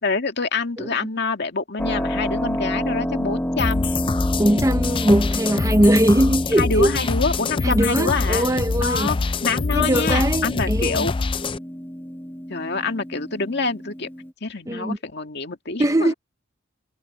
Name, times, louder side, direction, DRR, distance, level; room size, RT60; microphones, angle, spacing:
voice 1, 0.0-3.9 6.6-8.5 8.8-9.2 9.4-11.1 12.5-14.1 14.4-16.1, left 4 dB, 55° left, 2.1 m, -26 dB
Keyboard (musical), 1.8-14.3, equal, 10° left, 1.3 m, -30 dB
sound 1, 3.6-11.6, left 4 dB, 25° left, 0.4 m, -25 dB
voice 2, 4.4-6.9 7.6-9.2 9.7-11.1 14.7-15.0 15.8-16.1, right 1 dB, 15° right, 0.9 m, -20 dB
head